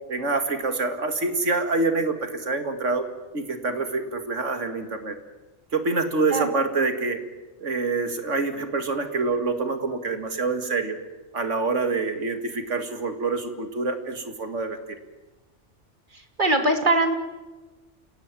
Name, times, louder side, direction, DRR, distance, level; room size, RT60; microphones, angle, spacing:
voice 1, 0.1-3.0 3.3-5.2 5.7-7.2 7.6-11.0 11.3-15.0, right 3 dB, 85° right, 8 dB, 2.5 m, -26 dB
voice 2, 16.4-17.1, right 2 dB, 40° right, 5 dB, 2.8 m, -21 dB
29.0 x 17.5 x 9.1 m, 1.2 s
omnidirectional pair, 1.2 m